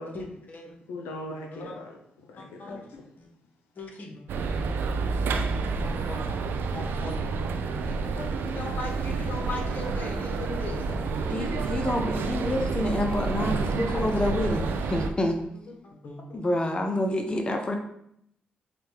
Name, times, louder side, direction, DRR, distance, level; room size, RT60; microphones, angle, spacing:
voice 1, 0.1-0.8 1.5-1.7 2.4-2.8 3.2-3.3 3.8-4.2 5.8-6.2 6.7-7.2 7.7-8.2 8.5-11.5 13.9-14.7 15.7-16.4, left 2 dB, 50° left, 1 dB, 0.9 m, -39 dB
voice 2, 0.9-3.0, left 1 dB, 85° left, 1 dB, 0.4 m, -40 dB
sound 1, 4.3-15.1, right 4 dB, 70° right, 0.3 m, -29 dB
voice 3, 11.3-15.4 16.3-17.8, left 1 dB, 25° left, 4 dB, 0.5 m, -27 dB
4.9 x 2.2 x 3.1 m, 0.74 s
supercardioid pair, 55°, 4 cm